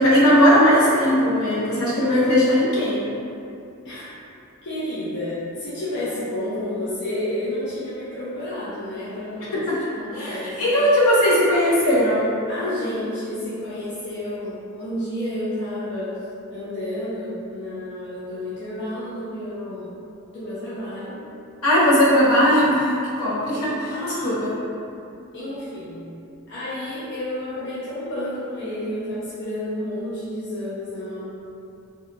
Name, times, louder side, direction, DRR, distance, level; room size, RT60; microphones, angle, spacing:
voice 1, 0.0-3.0 9.7-9.8 10.2-12.3 21.6-23.9 24.2-24.3, equal, 75° left, -9 dB, 0.8 m, -18 dB
voice 2, 4.6-9.6 10.0-10.8 12.5-16.2 16.5-19.9 20.3-21.2 23.9-24.3 25.3-26.1 26.5-31.2, left 1 dB, 55° left, -11 dB, 0.5 m, -30 dB
2.6 x 2.2 x 2.5 m, 2.7 s
head